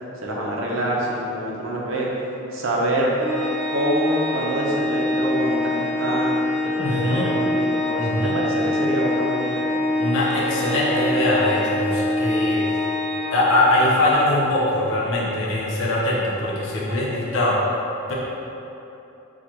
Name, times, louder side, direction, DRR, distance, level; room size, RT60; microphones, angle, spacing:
voice 1, 0.2-2.1 2.5-3.1 3.7-9.6, right 1 dB, 75° right, -4 dB, 0.7 m, -26 dB
Organ, 3.2-13.9, left 1 dB, 15° left, 0.8 m, -24 dB
voice 2, 6.8-7.3 8.0-8.4 10.0-12.6 13.3-17.6 18.1-18.2, left 1 dB, 70° left, -6 dB, 0.8 m, -22 dB
6.2 x 2.5 x 2.9 m, 2.9 s
head